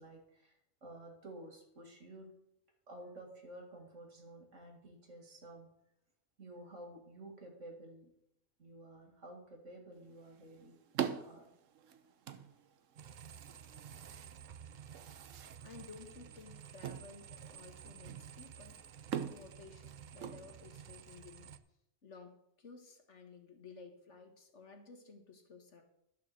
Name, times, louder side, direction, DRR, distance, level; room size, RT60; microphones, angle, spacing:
voice 1, 0.0-2.3 2.9-5.7 6.4-8.1 8.6-10.8 11.2-11.5, right 1 dB, 70° right, 1 dB, 2.5 m, -52 dB
sound 1, 9.9-21.0, right 8 dB, 90° right, 1.2 m, -45 dB
sound 2, 13.0-21.6, right 8 dB, 50° right, 0.6 m, -53 dB
voice 2, 15.6-18.8 19.3-21.5 22.0-25.8, left 4 dB, 70° left, 5 dB, 1.8 m, -55 dB
12.0 x 6.0 x 6.6 m, 0.81 s
omnidirectional pair, 1.3 m